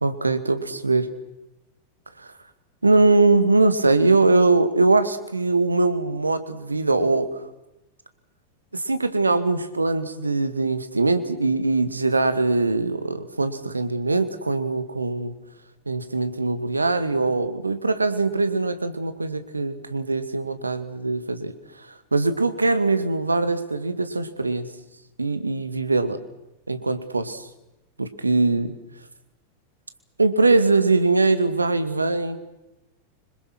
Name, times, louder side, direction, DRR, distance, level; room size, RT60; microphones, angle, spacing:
voice 1, 0.0-1.1 2.2-2.3 2.8-7.4 8.7-15.3 15.9-21.5 22.1-24.7 25.2-26.2 26.7-27.5 28.0-28.7 30.2-32.4, right 3 dB, 80° right, 11 dB, 2.1 m, -22 dB
26.0 x 26.0 x 6.2 m, 0.94 s
figure-of-eight pair, 90°, 0 cm